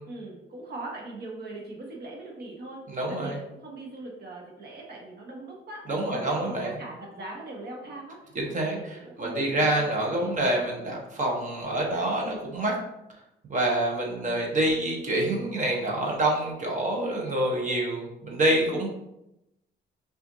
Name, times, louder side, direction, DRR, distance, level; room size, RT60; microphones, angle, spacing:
voice 1, 0.0-8.2 8.5-10.3 18.7-18.8, right 2 dB, 55° right, 0 dB, 1.3 m, -41 dB
voice 2, 2.9-3.4 5.9-6.7 8.3-12.8 13.5-18.9, right 1 dB, 40° right, -1 dB, 1.0 m, -27 dB
5.5 x 2.5 x 2.7 m, 0.87 s
cardioid pair, 90°, 20 cm